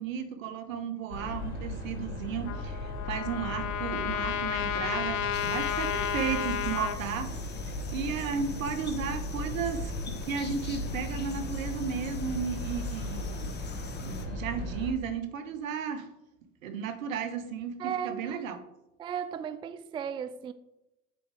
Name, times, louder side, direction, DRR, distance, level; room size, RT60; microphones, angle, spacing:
voice 1, 0.0-13.3 14.0-16.1 16.6-18.6, right 7 dB, 80° right, 1.1 m, -34 dB
sound 1, 1.1-14.9, left 2 dB, 45° left, 2.0 m, -37 dB
Trumpet, 2.5-7.0, left 9 dB, 65° left, 0.8 m, -32 dB
sound 2, 5.3-14.3, left 4 dB, 25° left, 1.0 m, -45 dB
voice 2, 17.8-18.5 19.0-20.5, right 8 dB, 15° right, 0.3 m, -35 dB
8.1 x 4.0 x 4.8 m
hypercardioid pair, 75°, 40 cm